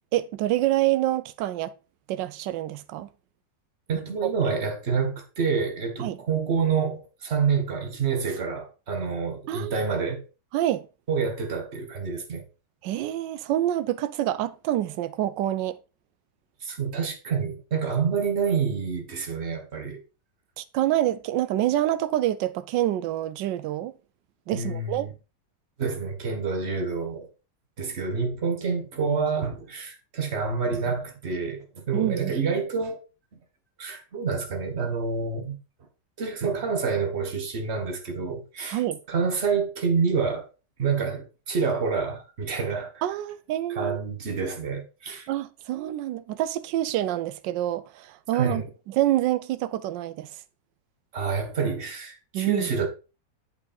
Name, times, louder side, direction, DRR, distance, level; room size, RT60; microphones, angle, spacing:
voice 1, 0.1-1.7 2.1-3.1 4.0-4.3 6.0-6.2 9.5-9.8 10.5-10.9 12.8-15.8 20.6-23.9 24.5-25.1 31.9-32.4 38.7-39.0 43.0-44.0 45.3-48.6 48.9-50.3 52.3-52.8, right 13 dB, 85° right, 1.3 m, -27 dB
voice 2, 3.9-10.2 11.1-12.4 16.6-20.0 24.5-25.1 25.8-27.3 27.8-33.0 33.8-35.6 36.2-38.8 39.1-40.5 40.8-42.9 43.7-45.3 48.3-48.7 51.1-52.9, right 5 dB, 40° right, 1.5 m, -28 dB
8.2 x 5.1 x 4.2 m
omnidirectional pair, 1.9 m